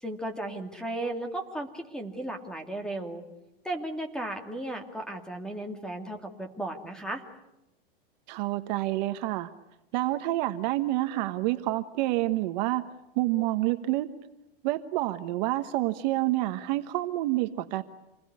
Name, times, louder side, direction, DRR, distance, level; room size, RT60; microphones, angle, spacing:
voice 1, 0.0-3.2 3.6-7.2, right 1 dB, ahead, 4 dB, 2.5 m, -35 dB
voice 2, 8.3-9.5 9.9-12.8 13.2-14.1 14.6-17.8, right 17 dB, 45° right, 9 dB, 1.2 m, -28 dB
27.5 x 20.5 x 9.6 m, 0.92 s
supercardioid pair, 150°, 29 cm